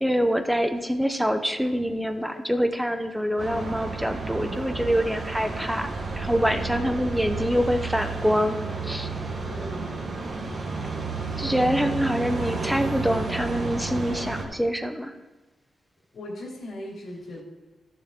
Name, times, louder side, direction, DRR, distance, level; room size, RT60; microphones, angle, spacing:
voice 1, 0.0-5.9 6.2-8.6 8.8-9.1 11.4-15.1, equal, ahead, 7 dB, 0.8 m, -25 dB
sound 1, 3.4-14.4, right 4 dB, 45° right, 1.5 m, -31 dB
voice 2, 6.7-7.2 9.4-10.0 11.7-11.9 12.3-12.6 16.1-17.4, left 1 dB, 70° left, -3 dB, 3.1 m, -39 dB
14.0 x 6.6 x 3.7 m, 1.2 s
wide cardioid pair, 120°, 0 cm